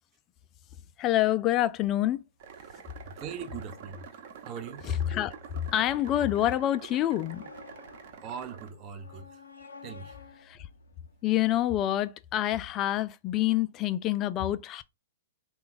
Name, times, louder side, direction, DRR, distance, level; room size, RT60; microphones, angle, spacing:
voice 1, 1.0-2.2 4.8-5.4 5.7-7.4 10.4-10.7 11.2-14.8, left 13 dB, 30° left, 0.3 m, -27 dB
sound 1, 1.8-11.7, left 4 dB, 75° left, 0.6 m, -53 dB
sound 2, 2.4-8.7, right 7 dB, 50° right, 0.9 m, -47 dB
voice 2, 3.0-4.1 4.4-4.8 8.2-9.3 9.8-10.1, right 7 dB, 35° right, 0.6 m, -40 dB
3.8 x 2.3 x 3.8 m
figure-of-eight pair, 110°, 0 cm